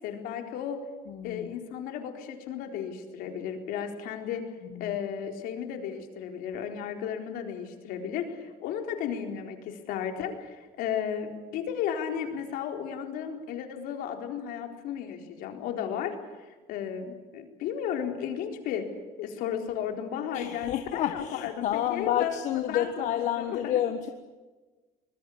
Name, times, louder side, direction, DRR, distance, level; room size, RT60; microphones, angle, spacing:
voice 1, 0.0-0.8 1.2-4.5 4.8-18.9 19.2-22.3 22.7-23.7, left 8 dB, 70° left, 4 dB, 4.2 m, -34 dB
voice 2, 1.1-1.5 4.7-5.0 20.3-24.1, left 11 dB, 50° left, 7 dB, 1.4 m, -29 dB
24.5 x 21.0 x 8.7 m, 1.3 s
cardioid pair, 175°, 16 cm